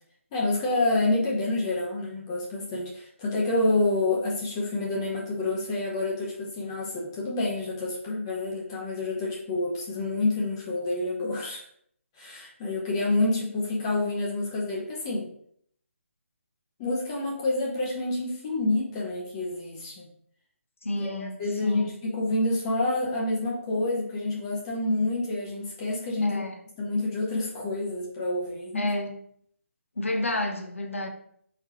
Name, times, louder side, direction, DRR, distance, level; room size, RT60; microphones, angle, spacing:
voice 1, 0.3-11.6 12.2-15.3 16.8-20.1 21.0-26.4 26.8-28.9, left 2 dB, 20° left, -3 dB, 0.8 m, -28 dB
voice 2, 20.8-22.0 26.2-26.6 28.7-29.2 30.0-31.1, left 1 dB, 70° left, 4 dB, 0.7 m, -30 dB
4.3 x 4.0 x 2.9 m, 0.65 s
figure-of-eight pair, 145°, 7 cm